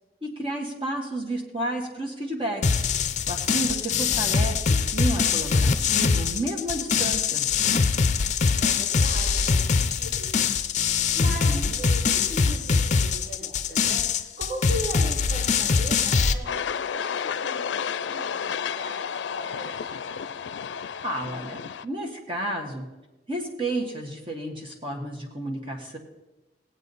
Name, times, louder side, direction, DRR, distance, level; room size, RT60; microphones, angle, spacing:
voice 1, 0.2-2.8 3.3-7.4 11.3-11.7 21.0-22.9 23.3-26.0, right 1 dB, 30° right, 0 dB, 1.6 m, -31 dB
sound 1, 2.6-16.3, left 5 dB, 40° left, 0.6 m, -23 dB
voice 2, 7.9-8.3 8.6-10.5 11.1-20.3, right 1 dB, 65° right, -7 dB, 4.8 m, -39 dB
sound 2, 16.4-21.8, left 7 dB, 90° left, 0.4 m, -31 dB
19.0 x 8.2 x 4.1 m, 1.1 s
head